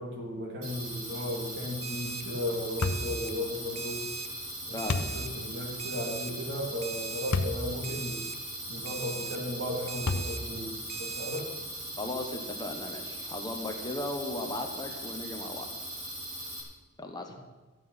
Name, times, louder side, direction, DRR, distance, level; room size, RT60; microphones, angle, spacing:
voice 1, 0.0-4.1 4.7-8.3 8.7-11.5, left 1 dB, 50° right, 0 dB, 2.8 m, -35 dB
sound 1, 0.6-16.6, right 1 dB, 70° right, 3.6 m, -40 dB
Alarm, 1.8-2.2 2.8-3.3 3.8-4.3 4.8-5.3 5.8-6.3 6.8-7.3 7.8-8.4 8.9-9.4 9.9-10.4 10.9-11.4, right 7 dB, 30° right, 0.6 m, -39 dB
sound 2, 2.8-3.1 4.9-5.2 7.3-7.6 8.2-8.3 10.0-10.5, left 3 dB, 85° left, 0.9 m, -29 dB
voice 2, 4.7-5.1 12.0-15.7 17.0-17.3, left 2 dB, 20° left, 3 dB, 1.1 m, -36 dB
14.0 x 9.2 x 5.7 m, 1.2 s
head